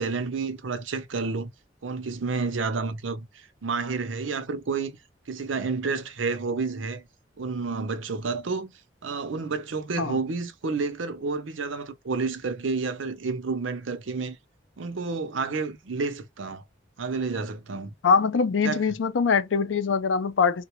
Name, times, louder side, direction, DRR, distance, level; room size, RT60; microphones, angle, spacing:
voice 1, 0.0-1.5 1.8-4.9 5.3-7.0 7.4-8.7 9.0-14.4 14.8-16.6 17.0-17.9 18.6-18.8, right 4 dB, 85° right, 0.6 m, -30 dB
voice 2, 18.0-20.6, left 5 dB, 75° left, 0.5 m, -23 dB
3.8 x 2.2 x 3.0 m
head